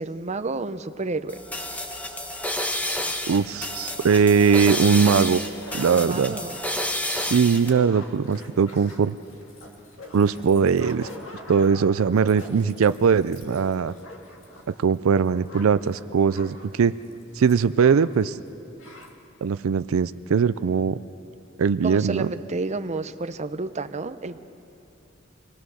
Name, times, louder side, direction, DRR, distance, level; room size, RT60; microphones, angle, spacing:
voice 1, 0.0-1.4 5.9-6.6 21.8-24.4, right 3 dB, 35° right, 10 dB, 0.7 m, -30 dB
sound 1, 1.3-7.7, left 1 dB, 10° left, 1.1 m, -30 dB
voice 2, 3.3-5.4 5.7-6.3 7.2-9.2 10.1-11.1 11.5-13.9 14.8-17.0 17.3-18.4 19.4-21.0 21.6-22.3, right 6 dB, 85° right, 14 dB, 0.4 m, -20 dB
sound 2, 5.0-18.2 18.5-18.6 18.8-19.1, left 1 dB, 70° left, 2.1 m, -45 dB
25.5 x 18.5 x 6.3 m, 2.7 s
head